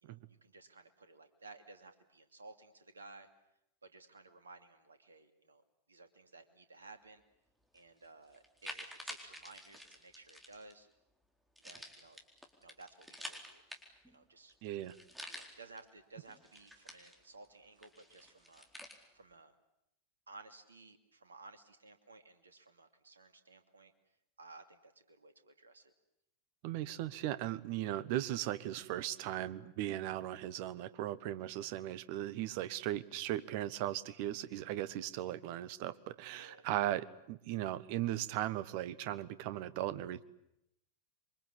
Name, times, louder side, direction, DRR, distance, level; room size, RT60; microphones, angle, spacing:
voice 1, 0.0-3.3 3.8-5.6 5.9-7.2 7.7-10.9 11.6-12.2 12.6-13.7 14.1-14.5 15.3-18.7 19.1-19.5 20.3-23.9 24.4-25.9 36.3-36.7, right 3 dB, 75° right, 8 dB, 2.6 m, -56 dB
sound 1, 7.8-7.9 8.3-10.7 11.6-14.2 14.5-14.6 14.8-15.8 16.2-17.5 17.8-19.0, equal, 5° right, 4.2 m, -49 dB
voice 2, 14.6-14.9 26.6-40.2, right 13 dB, 45° right, 16 dB, 1.3 m, -37 dB
27.0 x 24.0 x 8.6 m, 0.82 s
figure-of-eight pair, 90°, 0 cm